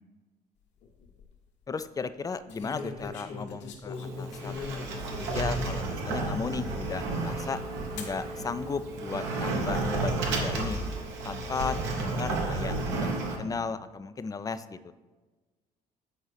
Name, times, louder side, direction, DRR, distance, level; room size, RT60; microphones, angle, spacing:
sound 1, 0.8-1.2 2.5-5.8 6.4-6.5 8.0-8.2 9.1-9.6, left 4 dB, 60° left, 1.1 m, -40 dB
voice 1, 1.7-7.6 7.9-10.8 11.2-13.1 13.4-14.9, left 4 dB, 20° left, 13 dB, 0.3 m, -35 dB
Sliding door, 3.9-13.4, right 2 dB, 70° right, 1.0 m, -32 dB
7.7 x 4.4 x 3.3 m, 1.3 s
hypercardioid pair, 55°, 20 cm